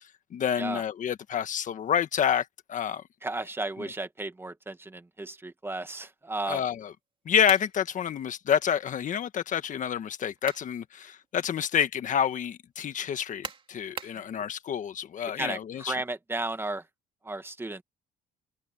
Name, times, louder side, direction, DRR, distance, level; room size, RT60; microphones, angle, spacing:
voice 1, 0.3-3.0 6.5-6.9 7.2-15.9, left 8 dB, 50° left, 1.5 m, -28 dB
voice 2, 3.2-6.6 15.4-15.6 15.9-16.8 17.2-17.8, right 2 dB, 15° right, 1.9 m, -34 dB
sound 1, 7.5-7.8 10.1-10.7 11.2-11.3 13.4-14.2, right 5 dB, 30° right, 2.7 m, -39 dB
cardioid pair, 110°, 17 cm